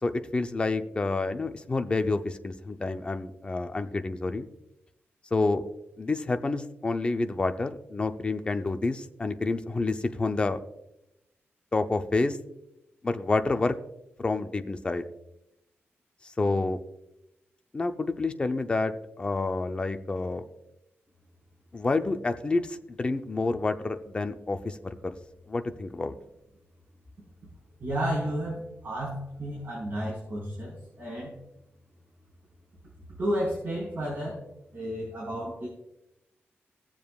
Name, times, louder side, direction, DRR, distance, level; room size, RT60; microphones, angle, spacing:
voice 1, 0.0-4.5 5.3-5.6 6.0-10.6 11.7-12.4 13.0-13.8 14.2-15.1 16.2-16.8 17.7-20.4 21.7-25.2 25.5-26.1, left 3 dB, 25° left, 7 dB, 0.6 m, -28 dB
voice 2, 27.8-31.3 33.2-34.4 34.7-35.7, equal, 45° right, -7 dB, 4.5 m, -32 dB
20.5 x 7.3 x 2.4 m, 0.88 s
wide cardioid pair, 170°, 4 cm